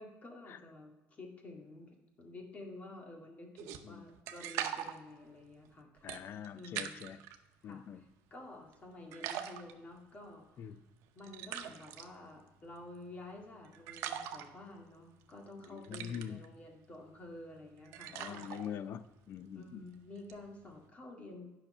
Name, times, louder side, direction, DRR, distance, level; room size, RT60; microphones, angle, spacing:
voice 1, 0.0-6.1 6.5-7.1 7.6-10.8 11.1-18.7 19.5-21.5, left 2 dB, 30° left, 2.0 m, -51 dB
sound 1, 3.6-7.4 7.8-8.8 9.1-20.9, right 10 dB, 75° right, 0.8 m, -44 dB
voice 2, 6.0-7.2 7.6-8.0 10.6-10.8 15.7-16.4 18.1-19.8, left 8 dB, 50° left, 0.5 m, -44 dB
9.9 x 5.8 x 5.4 m
cardioid pair, 120°, 5 cm